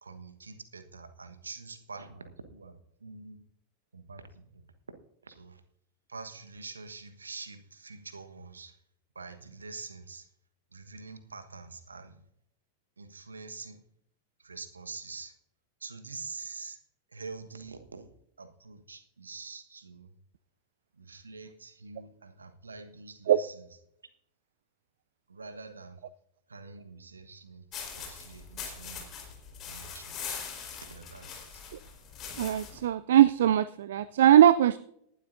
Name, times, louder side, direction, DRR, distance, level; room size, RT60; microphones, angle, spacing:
voice 1, 0.0-3.4 3.9-4.7 5.2-5.6 6.1-8.8 9.1-10.3 10.7-12.2 13.0-13.8 14.4-15.3 15.8-16.8 17.1-18.1 18.4-20.1 20.9-23.6 25.3-26.0 26.5-29.1 29.7-30.4 30.7-31.6, right 4 dB, 75° right, 9 dB, 1.2 m, -45 dB
sound 1, 27.7-32.8, left 6 dB, 30° left, 4.4 m, -42 dB
voice 2, 32.4-34.8, right 11 dB, 60° right, 17 dB, 0.4 m, -21 dB
19.0 x 11.5 x 2.6 m, 0.74 s
figure-of-eight pair, 90°, 0 cm